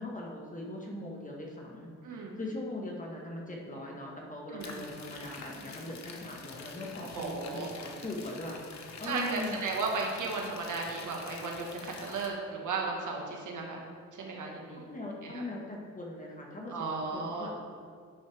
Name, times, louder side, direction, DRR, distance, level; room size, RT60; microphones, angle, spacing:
voice 1, 0.0-9.7 14.8-17.6, left 1 dB, 25° left, -2 dB, 1.5 m, -40 dB
voice 2, 2.0-2.4 4.5-4.8 7.1-7.7 9.0-13.8 14.1-14.8 15.2-15.4 16.7-17.5, right 3 dB, 75° right, 0 dB, 1.7 m, -35 dB
sound 1, 4.6-12.3, left 4 dB, 60° left, 1.1 m, -47 dB
11.0 x 6.3 x 3.5 m, 2.1 s
cardioid pair, 95°, 31 cm